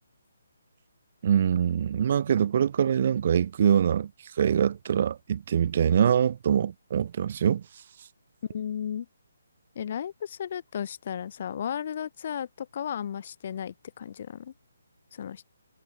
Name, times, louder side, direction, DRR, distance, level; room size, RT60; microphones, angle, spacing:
voice 1, 1.2-4.1 4.4-7.6, right 8 dB, 45° right, 0.4 m, -24 dB
voice 2, 8.5-9.1 9.8-14.5 15.1-15.4, left 8 dB, 45° left, 2.2 m, -34 dB
figure-of-eight pair, 145°, 0 cm